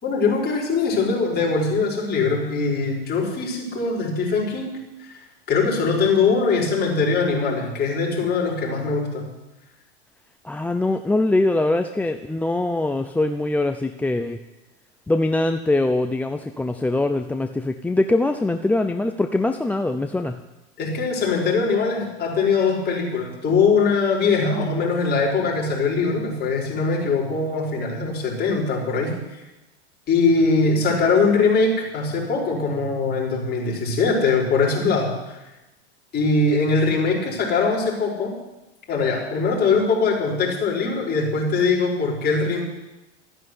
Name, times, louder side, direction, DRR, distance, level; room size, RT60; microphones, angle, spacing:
voice 1, 0.0-5.2 5.5-9.3 20.8-29.4 30.1-35.4 36.1-38.3 38.9-42.6, left 4 dB, 30° left, -2 dB, 5.4 m, -22 dB
voice 2, 10.4-14.4 15.1-20.4, left 2 dB, 5° left, 7 dB, 0.5 m, -22 dB
14.0 x 9.9 x 9.6 m, 1.0 s
supercardioid pair, 125°, 35 cm